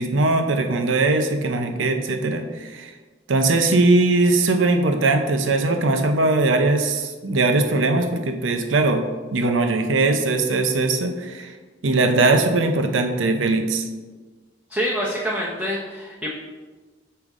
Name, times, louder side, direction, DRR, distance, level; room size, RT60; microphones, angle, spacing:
voice 1, 0.0-2.9 3.3-9.0 9.3-11.5 11.8-13.9, right 2 dB, 90° right, 6 dB, 0.7 m, -20 dB
voice 2, 14.7-16.3, equal, 5° right, -6 dB, 0.7 m, -26 dB
6.8 x 5.2 x 3.6 m, 1.3 s
head